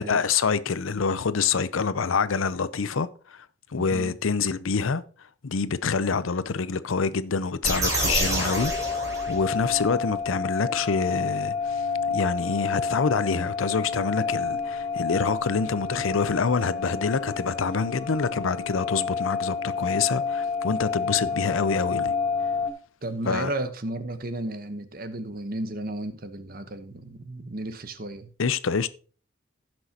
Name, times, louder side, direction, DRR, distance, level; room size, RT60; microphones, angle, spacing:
voice 1, 0.0-3.5 3.7-5.0 5.4-8.9 9.3-22.1 23.3-23.5 28.4-28.9, left 5 dB, 90° left, 0.6 m, -26 dB
sound 1, 7.6-9.8, right 1 dB, 15° right, 3.8 m, -27 dB
sound 2, 8.5-22.7, left 5 dB, 20° left, 1.7 m, -29 dB
voice 2, 23.0-28.3, right 1 dB, 45° right, 1.0 m, -33 dB
16.0 x 6.2 x 2.9 m
head